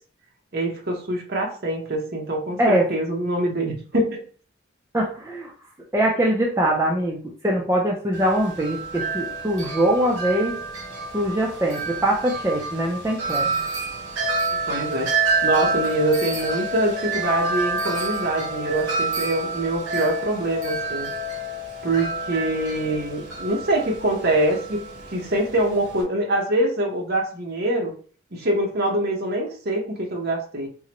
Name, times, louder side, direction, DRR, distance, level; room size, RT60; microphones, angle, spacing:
voice 1, 0.5-4.2 14.7-21.1 21.8-24.8 25.1-27.9 28.3-30.7, right 1 dB, 50° right, 0 dB, 0.9 m, -24 dB
voice 2, 4.9-5.5 5.9-10.6 11.1-13.6, right 1 dB, 15° right, -2 dB, 0.4 m, -22 dB
Wind chime, 8.1-26.0, right 3 dB, 85° right, 1.3 m, -28 dB
3.7 x 2.1 x 2.9 m, 0.42 s
head